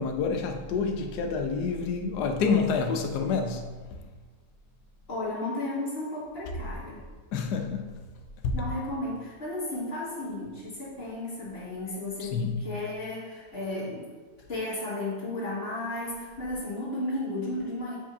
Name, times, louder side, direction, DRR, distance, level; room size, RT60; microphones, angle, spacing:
voice 1, 0.0-3.8 7.3-8.0 8.4-8.7 12.2-12.8, left 5 dB, 70° left, 5 dB, 1.2 m, -28 dB
voice 2, 5.1-7.0 8.5-14.0 14.5-18.0, left 2 dB, 35° left, -8 dB, 2.1 m, -34 dB
7.5 x 5.0 x 2.7 m, 1.4 s
omnidirectional pair, 1.9 m